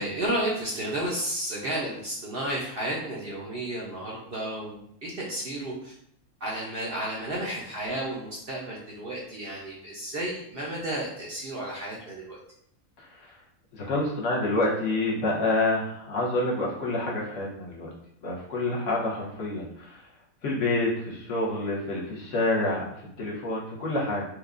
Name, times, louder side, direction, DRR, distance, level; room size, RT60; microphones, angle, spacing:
voice 1, 0.0-5.9 6.4-12.4, right 1 dB, 55° right, -4 dB, 0.7 m, -32 dB
voice 2, 13.0-13.4 13.7-17.9 18.2-20.1 20.4-24.3, left 2 dB, 65° left, -4 dB, 1.2 m, -28 dB
4.4 x 2.3 x 2.5 m, 0.71 s
omnidirectional pair, 1.5 m